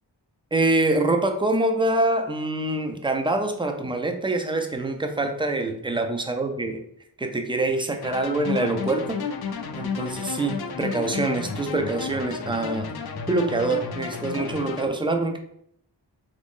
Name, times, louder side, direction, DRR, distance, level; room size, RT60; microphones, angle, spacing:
voice 1, 0.5-6.8 7.2-9.2 9.7-12.9 13.3-15.4, right 2 dB, 15° right, 5 dB, 0.3 m, -25 dB
sound 1, 8.0-14.9, left 5 dB, 60° left, 0.5 m, -32 dB
2.9 x 2.6 x 3.5 m, 0.71 s
wide cardioid pair, 70°, 45 cm